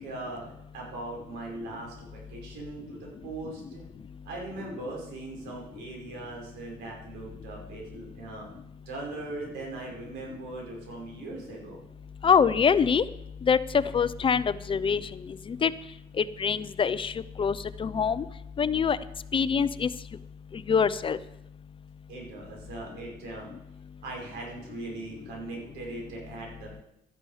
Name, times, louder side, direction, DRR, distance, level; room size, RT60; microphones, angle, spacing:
voice 1, 0.0-3.8 4.3-11.8 15.6-15.7 22.1-23.5 24.0-26.8, right 2 dB, 85° right, -1 dB, 5.2 m, -40 dB
voice 2, 12.2-13.0 13.4-15.1 15.5-15.7 16.2-18.2 18.6-19.0 19.3-19.9 20.5-21.2, left 6 dB, 30° left, 15 dB, 0.5 m, -24 dB
13.0 x 11.0 x 4.9 m, 0.82 s
cardioid pair, 110°, 17 cm